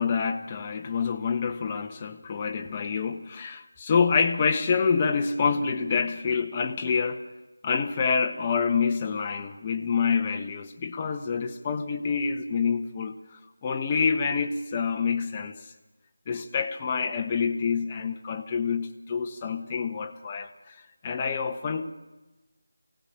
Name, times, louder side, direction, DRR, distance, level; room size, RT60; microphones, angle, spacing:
voice 1, 0.0-7.3 7.6-15.6 16.3-21.9, left 5 dB, 20° left, 3 dB, 1.2 m, -27 dB
24.5 x 17.0 x 8.6 m, 1.1 s
figure-of-eight pair, 165°, 0 cm